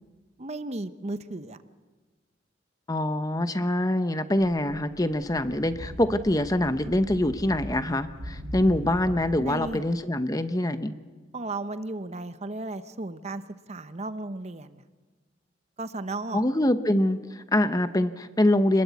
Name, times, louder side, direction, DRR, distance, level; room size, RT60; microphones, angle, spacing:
voice 1, 0.4-1.6 9.4-9.8 11.3-13.4 13.7-14.8 15.8-16.4, right 2 dB, 35° right, 12 dB, 0.8 m, -34 dB
voice 2, 2.9-11.0 16.3-18.8, left 1 dB, 20° left, 11 dB, 0.9 m, -24 dB
sound 1, 4.4-9.8, equal, 70° right, 3.7 m, -40 dB
26.5 x 21.0 x 8.3 m, 1.3 s
head